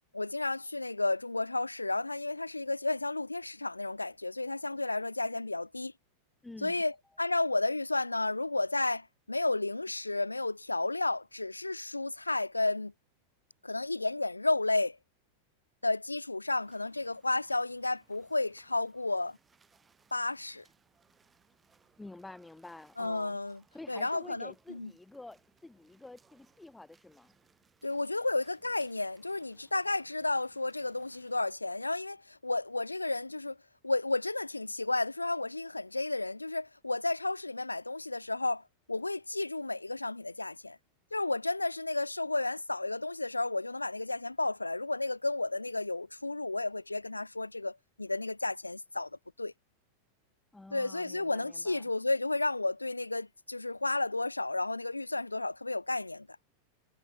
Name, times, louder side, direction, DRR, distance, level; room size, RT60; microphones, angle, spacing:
voice 1, 0.1-5.9 6.6-12.9 13.6-15.0 15.8-19.4 20.1-20.6 23.0-23.6 23.9-24.9 27.8-33.6 33.8-38.6 38.9-40.8 41.1-49.1 49.4-49.5 50.7-56.3, left 2 dB, 85° left, 0.9 m, -32 dB
voice 2, 6.4-6.8 22.0-23.4 23.7-27.3 50.5-51.9, left 2 dB, 5° left, 1.7 m, -49 dB
sound 1, 16.6-31.4, right 5 dB, 15° right, 7.8 m, -68 dB
figure-of-eight pair, 90°, 0 cm